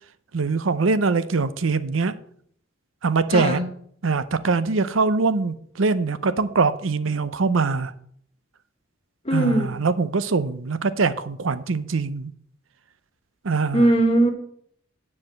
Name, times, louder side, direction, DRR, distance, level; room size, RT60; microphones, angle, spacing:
voice 1, 0.3-2.2 3.0-3.6 4.0-7.9 9.3-12.3 13.4-13.9, right 4 dB, 90° right, 0.7 m, -23 dB
voice 2, 3.3-3.7 9.2-9.8 13.7-14.3, right 1 dB, 30° left, 1.5 m, -19 dB
9.6 x 4.8 x 7.6 m
head